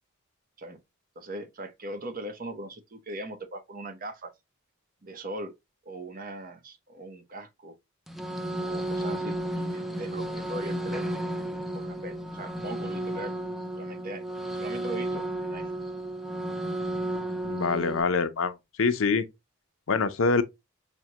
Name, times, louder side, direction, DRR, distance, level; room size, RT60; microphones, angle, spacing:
voice 1, 1.2-4.3 5.0-5.5 5.8-7.7 8.6-11.2 11.7-13.3 13.8-15.7, right 1 dB, 40° right, 0.7 m, -40 dB
sound 1, 8.1-18.0, right 1 dB, ahead, 0.3 m, -33 dB
voice 2, 17.4-19.3 19.9-20.4, left 4 dB, 70° left, 0.5 m, -25 dB
5.8 x 2.2 x 2.8 m
head